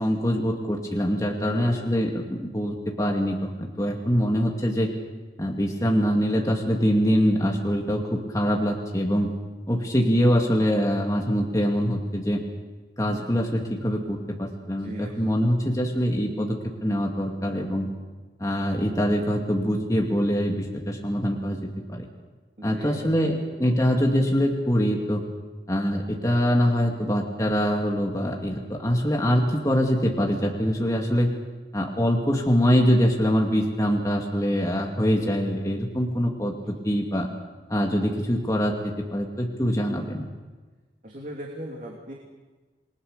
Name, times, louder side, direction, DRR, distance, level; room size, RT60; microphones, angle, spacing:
voice 1, 0.0-4.9 5.4-9.3 9.7-12.4 13.0-17.9 18.4-21.6 21.9-22.1 22.6-25.2 25.7-31.3 31.7-37.3 37.7-40.3, equal, 20° left, 0 dB, 2.4 m, -24 dB
voice 2, 1.4-1.7 14.8-15.3 22.6-23.4 41.0-42.1, right 1 dB, 45° right, -1 dB, 3.1 m, -38 dB
29.0 x 21.0 x 6.8 m, 1.3 s
head